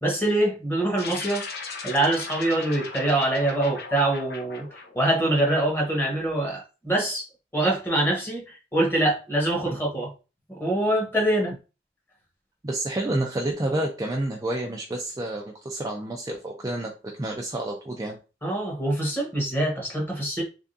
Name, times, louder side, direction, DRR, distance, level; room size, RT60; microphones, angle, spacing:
voice 1, 0.0-1.5 1.8-4.7 4.9-7.2 7.5-8.4 8.7-10.1 10.6-11.5 18.4-20.4, right 1 dB, 10° left, 1.2 m, -24 dB
sound 1, 1.0-5.7, left 4 dB, 65° left, 0.9 m, -38 dB
voice 2, 12.6-16.9 17.2-18.2, right 1 dB, 20° right, 0.4 m, -29 dB
3.5 x 3.4 x 2.6 m
head